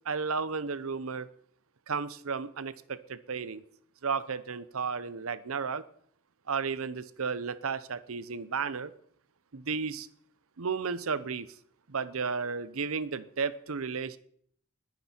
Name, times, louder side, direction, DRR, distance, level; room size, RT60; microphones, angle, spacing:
voice 1, 0.1-1.3 1.9-3.6 4.0-5.8 6.5-8.9 9.5-10.1 10.6-11.5 11.9-14.2, right 5 dB, 70° right, 15 dB, 0.8 m, -33 dB
21.0 x 9.4 x 4.5 m, 0.62 s
head